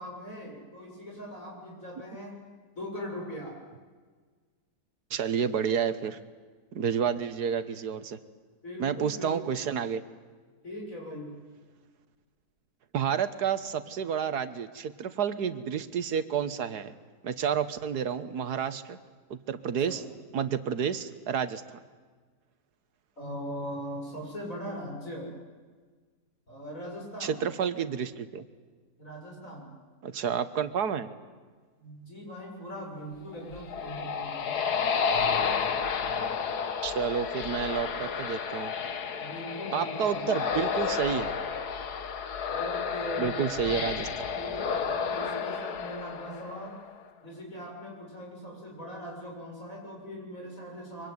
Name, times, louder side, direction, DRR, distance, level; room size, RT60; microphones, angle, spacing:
voice 1, 0.0-2.3 2.8-3.6 8.6-9.7 10.6-11.3 19.9-20.0 23.2-25.3 26.5-27.4 29.0-29.7 31.8-34.6 39.2-40.3 42.5-43.8 44.3-46.7 47.2-51.1, equal, 55° left, 0 dB, 7.6 m, -40 dB
voice 2, 5.1-6.2 6.7-8.2 8.8-10.0 12.9-16.9 17.2-19.0 19.3-20.0 20.3-21.8 27.2-28.4 30.0-31.1 36.8-38.7 39.7-41.3 43.2-44.1, right 7 dB, 85° right, 12 dB, 1.8 m, -30 dB
sound 1, 33.3-46.9, left 6 dB, 85° left, 1.9 m, -31 dB
24.0 x 24.0 x 9.6 m, 1.5 s
omnidirectional pair, 1.7 m